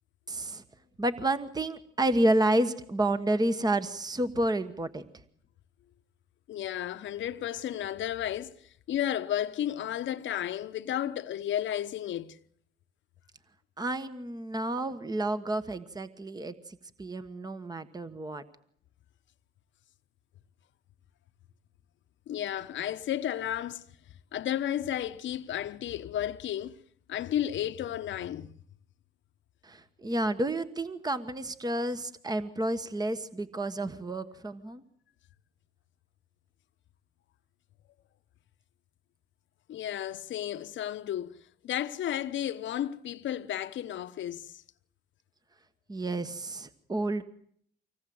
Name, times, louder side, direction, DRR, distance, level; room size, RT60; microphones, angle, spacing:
voice 1, 0.3-0.6 1.0-5.0 13.8-18.4 29.6-34.8 45.9-47.2, right 1 dB, 20° right, 1.3 m, -30 dB
voice 2, 6.5-8.5 8.9-12.4 22.3-23.9 24.3-26.7 27.1-28.6 39.7-44.6, left 11 dB, 70° left, 1.0 m, -33 dB
25.0 x 19.0 x 7.8 m
cardioid pair, 90°, 20 cm